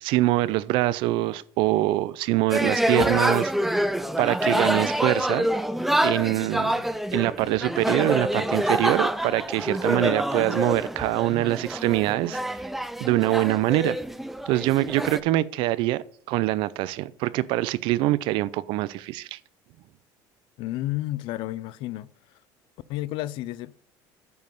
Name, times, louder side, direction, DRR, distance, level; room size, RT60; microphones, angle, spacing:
voice 1, 0.0-3.5 4.2-5.5 6.0-6.8 7.1-12.4 13.0-14.0 14.5-19.4, right 17 dB, 70° right, 0.5 m, -24 dB
sound 1, 2.5-15.2, equal, 5° right, 0.4 m, -26 dB
voice 2, 20.6-22.1 22.9-23.7, left 16 dB, 65° left, 0.5 m, -31 dB
9.3 x 5.3 x 5.3 m
cardioid pair, 135°, 9 cm